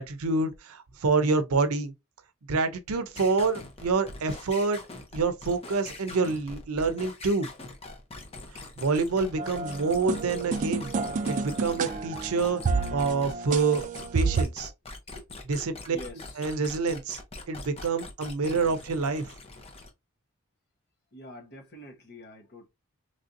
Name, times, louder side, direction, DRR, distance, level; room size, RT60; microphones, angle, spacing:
voice 1, 0.0-1.9 2.5-4.8 5.1-7.5 8.8-10.9 11.3-12.6 12.9-13.8 14.1-14.7 15.5-16.0 16.3-17.2 17.5-19.3, right 4 dB, 80° right, 0.6 m, -27 dB
sound 1, 3.2-19.9, left 2 dB, 30° left, 0.6 m, -43 dB
sound 2, 9.4-14.4, right 4 dB, 35° right, 0.3 m, -30 dB
voice 2, 15.5-16.4 21.1-22.7, left 1 dB, 50° left, 1.0 m, -46 dB
3.2 x 2.6 x 2.5 m
head